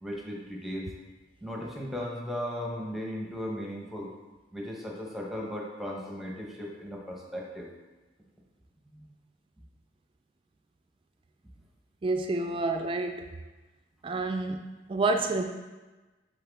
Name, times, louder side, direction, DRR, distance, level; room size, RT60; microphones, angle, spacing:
voice 1, 0.0-0.9 1.4-4.1 4.5-7.7 8.9-9.1, equal, ahead, -2 dB, 0.9 m, -36 dB
voice 2, 12.0-13.3 14.0-15.4, right 3 dB, 30° right, 5 dB, 0.3 m, -29 dB
7.8 x 3.8 x 3.5 m, 1.2 s
head